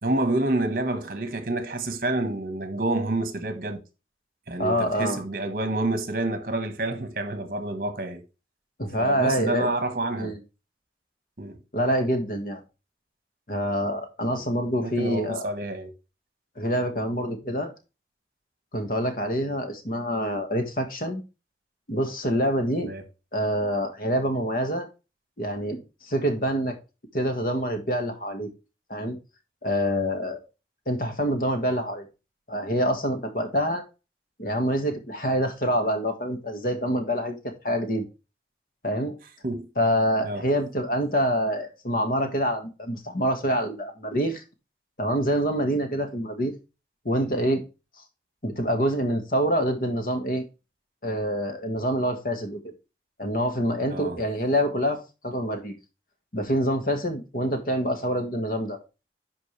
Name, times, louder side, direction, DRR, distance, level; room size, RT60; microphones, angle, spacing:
voice 1, 0.0-3.8 4.5-8.2 9.0-10.3 11.4-11.6 14.2-14.4 14.8-15.9 22.8-23.0 39.4-39.7 40.2-40.4 53.9-54.2, right 2 dB, 50° right, 1.5 m, -28 dB
voice 2, 4.6-5.2 8.8-9.7 10.2-10.4 11.7-12.6 13.5-15.5 16.6-17.7 18.7-21.2 21.9-22.9 23.3-24.9 25.4-26.7 27.1-28.5 28.9-29.2 29.6-30.4 30.8-32.0 32.5-33.8 34.4-38.1 38.8-39.1 39.8-44.4 45.0-46.5 47.0-47.6 48.4-50.4 51.0-52.6 53.2-55.7 56.3-58.8, equal, 50° left, 1.8 m, -26 dB
11.0 x 5.0 x 3.4 m
head